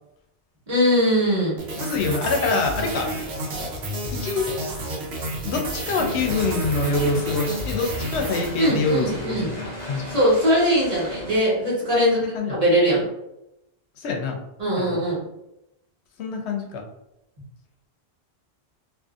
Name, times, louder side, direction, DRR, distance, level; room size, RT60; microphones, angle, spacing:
voice 1, 0.7-1.6 8.6-9.6 10.1-12.2 12.5-13.0 14.6-15.2, equal, 35° right, -6 dB, 1.2 m, -21 dB
sound 1, 1.6-9.1, right 1 dB, 75° right, 0.9 m, -31 dB
voice 2, 1.8-3.1 4.1-4.5 5.4-10.1 12.0-12.6 14.0-14.4 14.8-15.0 16.2-16.9, left 3 dB, 85° left, 3 dB, 0.9 m, -25 dB
sound 2, 6.0-11.4, equal, 45° left, 0.9 m, -37 dB
2.5 x 2.5 x 2.4 m, 0.87 s
omnidirectional pair, 1.1 m